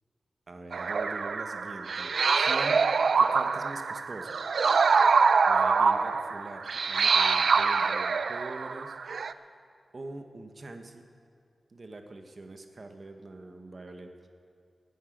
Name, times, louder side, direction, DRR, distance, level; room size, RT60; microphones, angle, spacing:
voice 1, 0.5-2.8 3.2-4.4 5.5-9.6 9.9-11.1 11.7-14.1, right 2 dB, 40° right, 6 dB, 1.1 m, -44 dB
sound 1, 0.7-9.3, right 5 dB, 70° right, 0.4 m, -25 dB
13.0 x 10.0 x 9.0 m, 2.2 s
wide cardioid pair, 155°, 0 cm